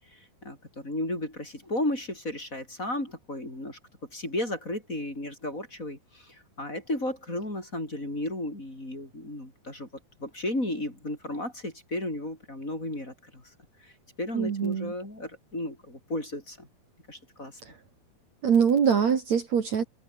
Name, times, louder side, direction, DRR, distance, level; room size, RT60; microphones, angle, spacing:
voice 1, 0.1-3.8 4.1-9.9 10.2-13.4 13.8-13.9 14.2-16.7 17.1-17.6, left 1 dB, 20° left, 7.4 m, -34 dB
voice 2, 14.3-14.9 18.4-19.8, right 7 dB, 55° right, 3.5 m, -23 dB
omnidirectional pair, 4.1 m